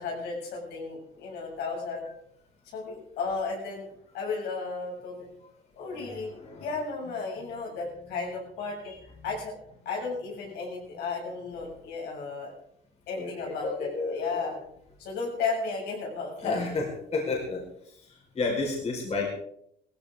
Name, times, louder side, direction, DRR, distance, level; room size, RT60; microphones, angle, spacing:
voice 1, 0.0-2.0 2.7-3.9 4.1-5.3 5.8-6.3 6.6-8.9 9.2-9.6 9.9-12.5 13.1-14.6 15.0-16.6, left 4 dB, 80° left, -2 dB, 7.4 m, -34 dB
voice 2, 5.9-6.7 8.8-9.0 13.1-14.5 16.4-19.3, left 3 dB, 40° left, -1 dB, 5.0 m, -32 dB
17.5 x 16.0 x 3.9 m, 0.71 s
cardioid pair, 110°, 17 cm